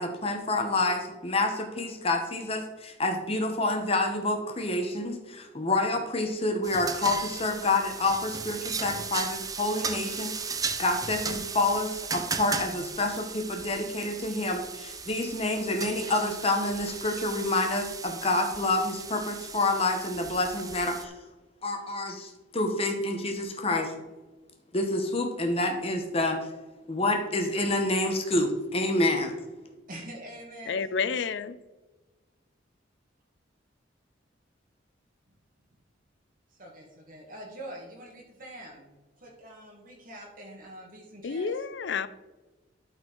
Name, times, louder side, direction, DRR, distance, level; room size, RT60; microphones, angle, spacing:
voice 1, 0.0-10.3 10.8-21.1 21.6-23.9 24.7-26.4 26.9-29.3, left 2 dB, 30° left, 4 dB, 0.9 m, -28 dB
sound 1, 6.6-21.0, right 5 dB, 20° right, 0.5 m, -36 dB
voice 2, 29.9-30.8 36.6-38.9 39.2-41.5, right 1 dB, 45° right, -2 dB, 1.5 m, -44 dB
voice 3, 30.7-31.5 41.2-42.1, left 5 dB, 65° left, 14 dB, 0.4 m, -30 dB
12.0 x 4.4 x 4.5 m, 1.2 s
head